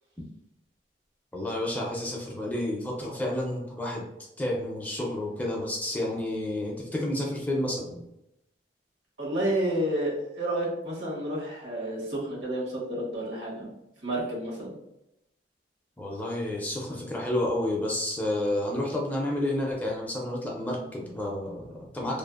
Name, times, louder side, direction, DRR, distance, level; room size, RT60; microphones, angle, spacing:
voice 1, 1.3-4.0 4.4-8.0 16.0-22.2, left 1 dB, 10° left, -2 dB, 0.4 m, -30 dB
voice 2, 9.2-13.7 14.0-14.8, right 1 dB, 85° right, -5 dB, 1.1 m, -30 dB
2.5 x 2.3 x 2.3 m, 0.85 s
head